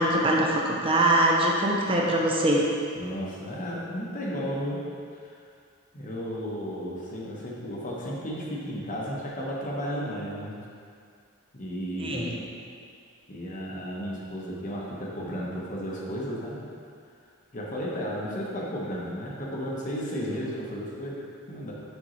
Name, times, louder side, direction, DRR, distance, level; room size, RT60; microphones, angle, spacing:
voice 1, 0.0-2.7 12.0-12.3, right 1 dB, 25° right, -2 dB, 0.7 m, -23 dB
voice 2, 3.0-4.8 5.1-5.3 5.9-10.6 11.5-12.5 13.3-16.7 17.5-21.2 21.5-21.7, equal, 40° left, -4 dB, 1.0 m, -33 dB
6.4 x 5.4 x 3.1 m, 2.3 s
head